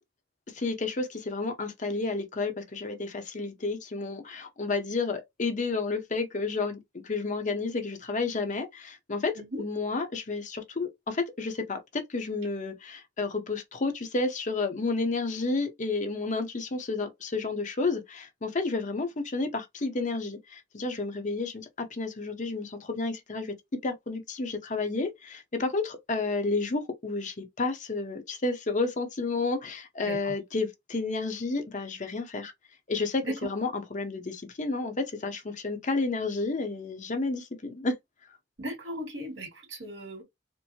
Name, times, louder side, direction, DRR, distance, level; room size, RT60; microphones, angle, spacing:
voice 1, 0.5-6.8 7.0-23.5 23.8-32.5 32.9-37.9, left 3 dB, 45° left, 0.7 m, -31 dB
voice 2, 30.0-30.3 33.2-33.3 38.6-40.2, right 1 dB, 80° right, 2.2 m, -37 dB
4.4 x 2.0 x 2.8 m
head